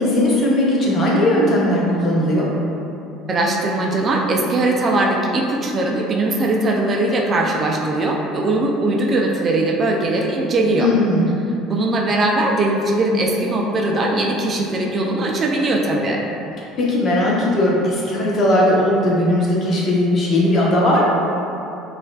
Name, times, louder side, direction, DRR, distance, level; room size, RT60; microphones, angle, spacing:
voice 1, 0.0-2.5 10.8-11.3 16.7-21.0, left 1 dB, 40° left, -4 dB, 0.9 m, -18 dB
voice 2, 3.3-10.9 11.7-16.2, right 2 dB, 35° right, -1 dB, 0.4 m, -20 dB
5.2 x 2.4 x 2.3 m, 2.8 s
supercardioid pair, 110°, 0 cm